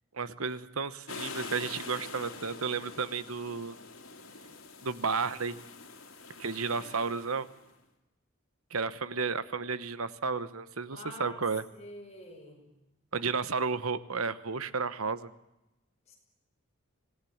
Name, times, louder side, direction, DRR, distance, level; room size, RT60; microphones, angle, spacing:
voice 1, 0.1-3.8 4.8-5.6 6.4-7.5 8.7-11.6 13.1-15.3, right 5 dB, 85° right, 15 dB, 1.1 m, -32 dB
mar ppp, 1.1-7.6, left 4 dB, 70° left, 3.2 m, -45 dB
voice 2, 10.9-11.5 11.7-12.7 16.1-16.2, left 1 dB, 30° left, 0 dB, 7.1 m, -47 dB
25.5 x 18.5 x 8.7 m, 0.96 s
head